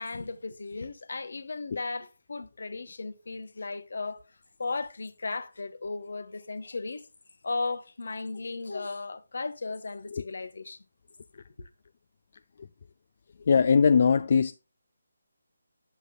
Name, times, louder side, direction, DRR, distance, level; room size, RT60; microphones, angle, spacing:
voice 1, 0.0-4.2 4.6-7.1 7.4-10.8 11.6-11.7, left 3 dB, 65° left, 1.0 m, -36 dB
voice 2, 13.5-14.6, left 6 dB, 45° left, 0.4 m, -21 dB
8.1 x 7.7 x 2.2 m
figure-of-eight pair, 155°, 0 cm